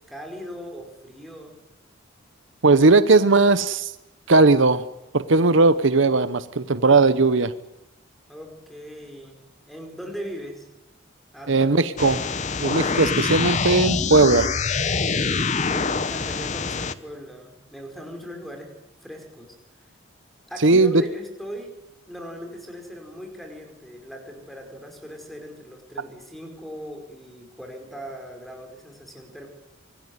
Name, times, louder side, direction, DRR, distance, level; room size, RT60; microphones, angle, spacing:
voice 1, 0.0-1.5 8.3-9.4 9.7-10.7 11.3-12.0 15.4-18.7 19.0-19.5 19.8-19.9 20.5-21.7 22.1-29.5, equal, ahead, 3 dB, 5.0 m, -39 dB
voice 2, 2.6-3.9 4.3-4.8 5.1-7.5 11.5-12.3 12.6-14.5 20.6-20.9, right 3 dB, 60° right, 14 dB, 0.9 m, -18 dB
sound 1, 12.0-16.9, left 4 dB, 35° left, 1.0 m, -25 dB
25.5 x 19.0 x 9.6 m, 0.89 s
head